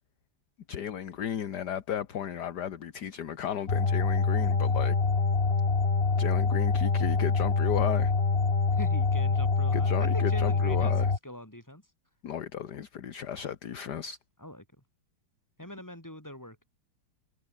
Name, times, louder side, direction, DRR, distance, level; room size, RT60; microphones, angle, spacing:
voice 1, 0.7-5.0 6.2-8.1 9.7-11.1 12.2-14.2, left 9 dB, 55° left, 1.8 m, -34 dB
sound 1, 3.7-11.2, left 4 dB, 30° left, 2.0 m, -25 dB
voice 2, 8.7-11.8 14.4-14.6 15.6-16.6, left 1 dB, 10° left, 5.5 m, -43 dB
omnidirectional pair, 2.2 m